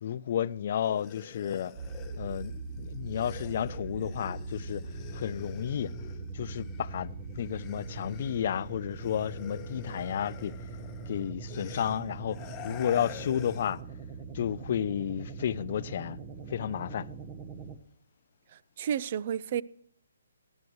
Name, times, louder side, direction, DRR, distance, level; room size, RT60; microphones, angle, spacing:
voice 1, 0.0-1.7 2.2-4.8 5.1-5.9 6.3-10.5 11.1-12.4 12.6-13.8 14.3-16.2 16.5-17.1, left 9 dB, 45° left, 0.5 m, -32 dB
sound 1, 0.8-7.0 7.3-13.8, left 8 dB, 15° left, 1.1 m, -48 dB
sound 2, 1.8-17.8, right 4 dB, 20° right, 1.1 m, -41 dB
voice 2, 18.5-19.6, right 9 dB, 40° right, 0.5 m, -32 dB
19.0 x 12.0 x 3.1 m
hypercardioid pair, 160°, 0 cm